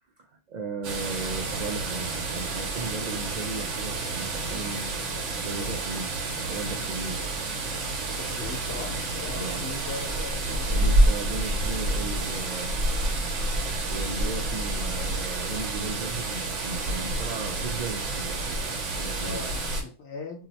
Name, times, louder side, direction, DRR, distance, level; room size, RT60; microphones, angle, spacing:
voice 1, 0.2-5.0 5.4-7.2 9.3-9.6 10.5-12.8 13.9-19.5, right 3 dB, 65° right, 3 dB, 0.4 m, -36 dB
sound 1, 0.8-19.8, right 2 dB, 80° right, 1.1 m, -29 dB
voice 2, 8.1-10.9 19.2-20.5, left 4 dB, 70° left, 1 dB, 1.1 m, -39 dB
2.8 x 2.0 x 4.0 m, 0.36 s
omnidirectional pair, 1.2 m